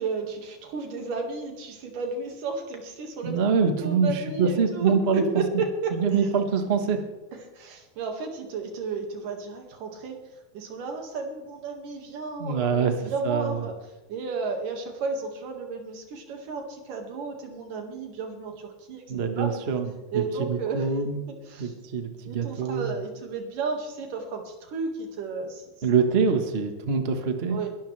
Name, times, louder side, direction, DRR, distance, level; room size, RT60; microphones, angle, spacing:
voice 1, 0.0-3.3 3.6-6.3 7.6-10.2 10.5-13.8 14.1-19.0 19.4-19.5 20.1-20.9 21.3-21.7 22.2-25.6 26.3-26.4 27.5-27.7, right 4 dB, 90° right, 3 dB, 3.6 m, -33 dB
voice 2, 3.2-5.2 5.9-7.1 12.4-12.9 13.2-13.6 19.1-21.2 21.6-23.0 25.8-27.6, right 5 dB, 65° right, 5 dB, 0.6 m, -25 dB
21.5 x 12.5 x 3.3 m, 1.0 s
omnidirectional pair, 3.6 m